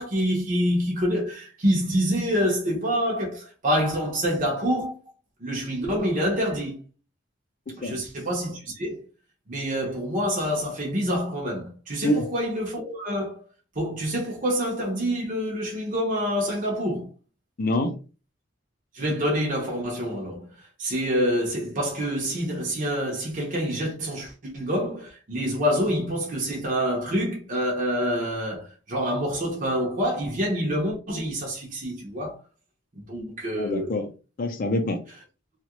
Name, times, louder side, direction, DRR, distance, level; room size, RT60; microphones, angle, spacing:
voice 1, 0.0-5.0 5.4-6.8 7.8-9.0 9.5-13.4 13.7-17.1 18.9-20.5 20.8-32.4 33.0-33.9, equal, 45° right, 0.9 m, -27 dB
voice 2, 7.7-8.0 12.0-12.3 17.6-18.0 33.5-34.1 34.4-35.0, left 1 dB, 45° left, 0.5 m, -26 dB
2.9 x 2.4 x 2.9 m
head